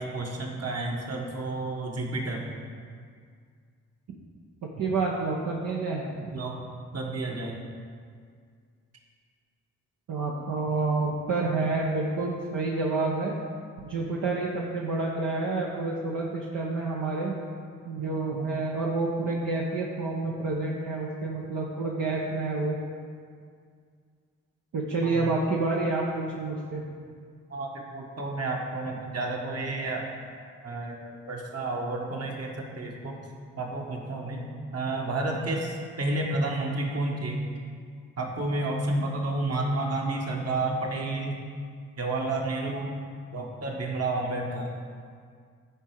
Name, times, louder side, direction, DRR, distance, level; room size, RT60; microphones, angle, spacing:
voice 1, 0.0-2.5 6.3-6.7 6.9-7.6 25.0-25.4 27.5-30.1 30.6-33.2 33.6-37.4 38.2-41.4 42.0-43.0 43.3-44.7, right 2 dB, 50° right, 0 dB, 1.6 m, -31 dB
voice 2, 4.7-6.3 10.1-13.4 13.8-17.3 17.8-22.8 24.7-26.8, right 3 dB, 65° right, -4 dB, 1.0 m, -28 dB
10.0 x 4.5 x 4.8 m, 2.1 s
hypercardioid pair, 45°, 33 cm